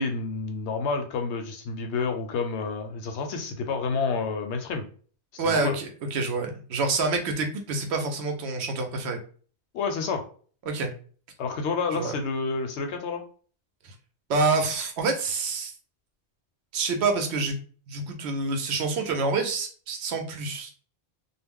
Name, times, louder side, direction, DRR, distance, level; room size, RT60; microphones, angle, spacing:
voice 1, 0.0-4.9 5.4-5.7 9.7-10.2 11.4-13.2, left 4 dB, 80° left, 5 dB, 0.9 m, -29 dB
voice 2, 5.4-9.2 10.7-10.9 11.9-12.1 13.8-13.9 14.3-15.7 16.7-17.6 17.9-20.7, right 3 dB, 75° right, 5 dB, 0.9 m, -27 dB
2.3 x 2.0 x 3.5 m, 0.43 s
omnidirectional pair, 1.1 m